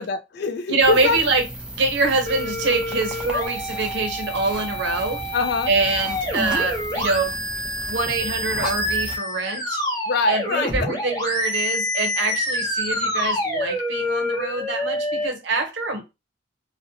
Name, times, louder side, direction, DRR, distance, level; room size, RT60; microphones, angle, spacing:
voice 1, 0.0-1.2 5.3-5.7 10.1-10.9, left 4 dB, 60° left, 0.4 m, -24 dB
voice 2, 0.7-1.4 1.7-5.2 5.7-7.4 7.9-9.8 10.3-16.0, right 3 dB, 65° right, 0.6 m, -24 dB
sound 1, 0.8-9.2, right 1 dB, 5° right, 0.5 m, -35 dB
sound 2, 2.3-15.3, left 1 dB, 20° left, 0.8 m, -27 dB
2.6 x 2.0 x 2.7 m
head